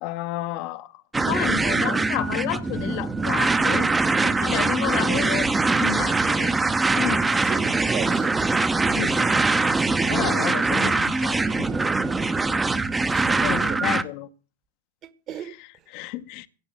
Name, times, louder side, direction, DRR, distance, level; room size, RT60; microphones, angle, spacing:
voice 1, 0.0-3.9 4.2-6.6 7.0-7.2 8.9-9.8 10.1-11.7 13.4-14.3 15.4-16.5, left 17 dB, 45° left, 0.8 m, -31 dB
sound 1, 1.1-14.0, right 3 dB, 10° right, 0.8 m, -22 dB
voice 2, 7.4-8.4 13.1-13.8 15.0-15.5, right 10 dB, 35° right, 1.4 m, -36 dB
16.5 x 6.3 x 7.9 m
figure-of-eight pair, 90°, 0 cm